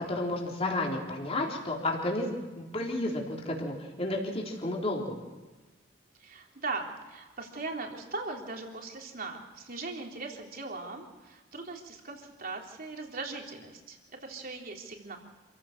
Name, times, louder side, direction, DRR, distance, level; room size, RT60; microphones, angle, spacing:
voice 1, 0.1-5.1, left 2 dB, 35° left, -1 dB, 3.8 m, -32 dB
voice 2, 6.2-15.2, right 3 dB, 50° right, 1 dB, 3.6 m, -39 dB
27.5 x 15.5 x 6.7 m, 1.2 s
head